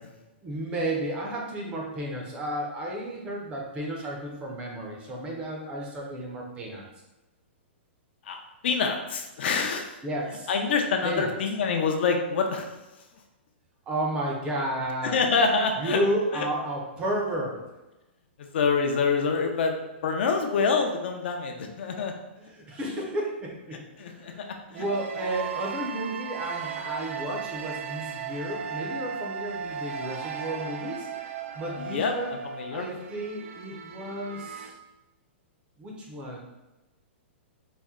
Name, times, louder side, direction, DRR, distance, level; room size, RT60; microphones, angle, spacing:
voice 1, 0.4-6.8 10.0-10.5 11.0-11.3 13.9-15.2 15.8-17.6 22.4-31.1 31.5-32.3 32.7-34.7 35.8-36.4, right 1 dB, 15° right, -1 dB, 0.5 m, -32 dB
voice 2, 8.6-9.9 10.5-12.7 15.0-16.0 16.3-16.5 18.4-19.7 20.0-22.1 24.0-24.5 24.7-24.8 31.8-32.9, left 5 dB, 60° left, 4 dB, 0.5 m, -26 dB
sound 1, 24.7-34.7, right 7 dB, 85° right, 0.4 m, -36 dB
4.2 x 2.1 x 3.6 m, 1.1 s
hypercardioid pair, 165°, 7 cm